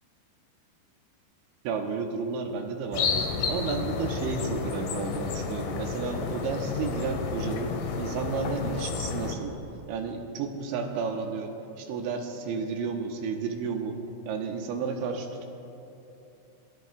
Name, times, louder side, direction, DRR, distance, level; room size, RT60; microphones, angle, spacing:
voice 1, 1.6-9.6 9.9-14.0 14.3-15.5, right 5 dB, 80° right, 3 dB, 3.3 m, -32 dB
sound 1, 2.9-9.3, left 5 dB, 80° left, 1.8 m, -31 dB
28.0 x 19.0 x 2.4 m, 3.0 s
omnidirectional pair, 5.3 m